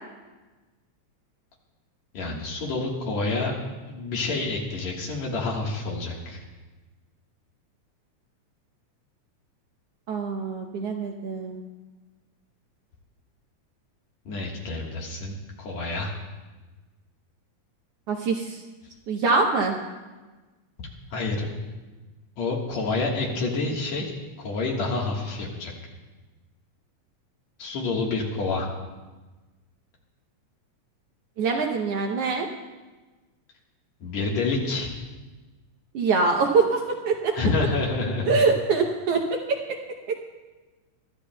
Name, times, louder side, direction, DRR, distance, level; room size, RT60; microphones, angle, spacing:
voice 1, 2.1-3.5 3.9-6.4 14.3-16.1 20.8-21.5 22.4-24.1 24.4-25.7 27.6-28.7 34.0-34.9 37.4-38.5, left 3 dB, 65° left, -2 dB, 2.7 m, -28 dB
voice 2, 10.1-11.6 18.1-18.6 19.1-19.8 31.4-32.5 35.9-37.3 38.2-39.4 40.1-40.2, right 4 dB, 70° right, 2 dB, 1.6 m, -24 dB
23.5 x 13.0 x 2.3 m, 1.2 s
omnidirectional pair, 3.4 m